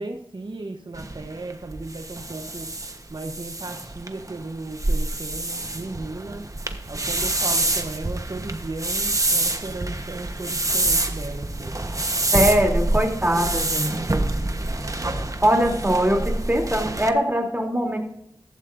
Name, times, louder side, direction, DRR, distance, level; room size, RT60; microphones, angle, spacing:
voice 1, 0.0-2.7 3.1-6.5 6.9-11.8 12.3-12.4, right 3 dB, 70° right, 3 dB, 1.1 m, -35 dB
sound 1, 0.9-17.1, right 2 dB, 45° right, 1.2 m, -26 dB
voice 2, 12.3-14.0 15.4-18.0, equal, 20° right, 1 dB, 3.2 m, -21 dB
14.5 x 12.5 x 2.7 m, 0.76 s
wide cardioid pair, 45°, 8 cm